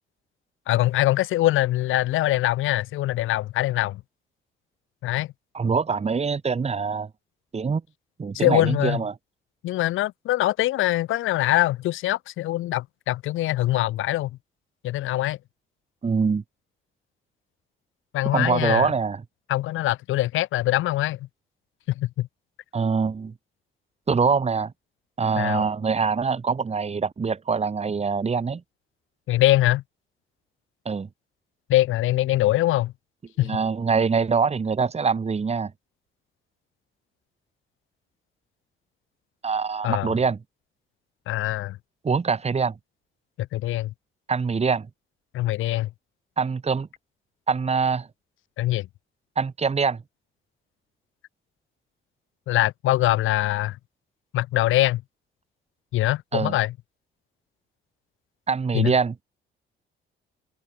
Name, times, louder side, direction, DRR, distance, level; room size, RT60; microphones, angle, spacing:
voice 1, 0.7-4.0 5.0-5.3 8.3-9.0 9.6-14.3 14.8-15.4 18.1-18.9 19.5-21.3 22.0-22.3 25.4-25.7 29.3-29.8 31.7-32.9 33.4-33.6 39.8-40.2 41.3-41.8 43.4-43.9 45.3-45.9 48.6-48.9 52.5-53.8 54.3-55.0 55.9-56.7 58.7-58.9, left 15 dB, 90° left, 2.6 m, -23 dB
voice 2, 5.5-7.1 7.5-7.8 8.2-9.1 16.0-16.4 18.3-19.2 22.7-23.3 24.1-24.7 25.2-28.6 30.9-31.1 33.4-35.7 39.4-40.4 42.0-42.7 44.3-44.9 46.4-46.9 47.5-48.1 49.4-50.0 56.3-56.6 58.5-59.1, right 5 dB, 30° right, 2.4 m, -24 dB
cardioid pair, 90°, 20 cm